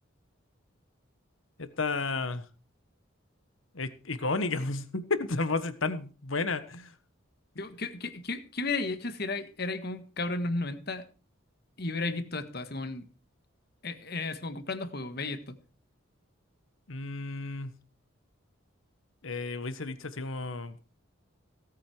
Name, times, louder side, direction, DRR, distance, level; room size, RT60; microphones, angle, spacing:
voice 1, 1.6-2.4 3.7-6.9 16.9-17.7 19.2-20.7, left 3 dB, 75° left, 11 dB, 1.3 m, -32 dB
voice 2, 7.6-11.0 11.8-13.1 13.8-15.6, left 3 dB, 50° left, 10 dB, 1.6 m, -34 dB
17.5 x 8.5 x 4.5 m, 0.36 s
head